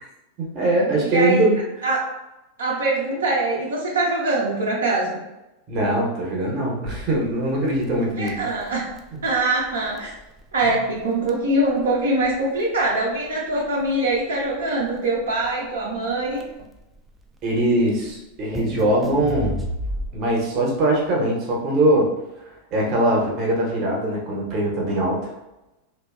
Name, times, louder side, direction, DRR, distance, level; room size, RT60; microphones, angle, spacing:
voice 1, 0.4-1.6 5.7-8.3 9.1-9.2 10.6-10.7 17.4-19.5 20.1-22.1 22.7-25.3, right 1 dB, 35° right, -2 dB, 0.8 m, -21 dB
voice 2, 1.0-1.5 1.8-2.0 2.6-5.2 8.2-8.8 9.2-10.1 10.5-16.4, right 2 dB, 70° right, -5 dB, 0.5 m, -23 dB
Crackle, 6.9-20.4, equal, 10° right, 0.3 m, -35 dB
2.8 x 2.3 x 2.3 m, 0.96 s
figure-of-eight pair, 90°, 0 cm